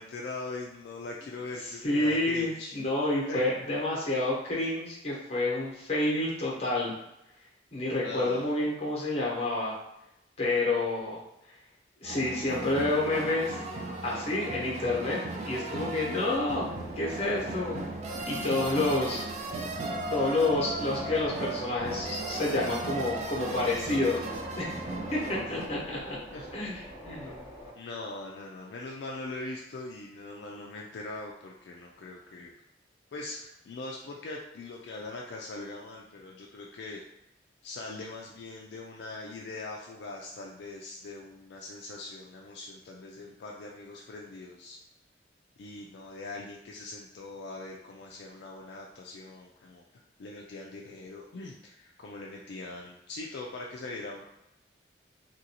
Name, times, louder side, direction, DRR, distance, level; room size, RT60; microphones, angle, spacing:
voice 1, 0.0-2.8 3.3-3.5 8.0-8.5 26.3-26.5 27.7-32.5 33.1-37.0 37.6-44.8 45.6-49.8 50.2-54.2, left 2 dB, 65° left, -1 dB, 0.3 m, -41 dB
voice 2, 1.8-6.9 7.7-9.8 10.4-11.2 12.0-13.6 14.0-16.7 17.0-17.8 18.3-19.3 20.1-24.3 24.6-24.8 25.1-26.2 26.5-27.4, left 2 dB, 35° left, -4 dB, 0.9 m, -29 dB
sound 1, 12.0-25.7, right 2 dB, 35° right, 0.4 m, -36 dB
Subway metro underground, 16.3-27.7, equal, 10° right, 0.9 m, -45 dB
2.9 x 2.6 x 2.8 m, 0.87 s
head